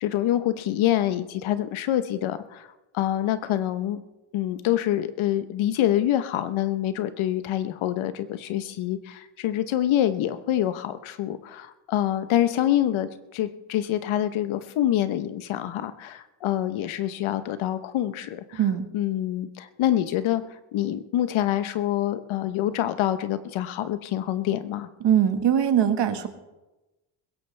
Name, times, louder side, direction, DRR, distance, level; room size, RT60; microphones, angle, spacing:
voice 1, 0.0-2.7 2.9-4.0 4.3-18.6 18.9-20.4 20.7-24.9, left 12 dB, 70° left, 12 dB, 1.1 m, -26 dB
voice 2, 18.5-18.8 25.0-26.3, right 9 dB, 55° right, 8 dB, 1.7 m, -21 dB
21.0 x 16.5 x 3.4 m, 1.0 s
cardioid pair, 80°, 49 cm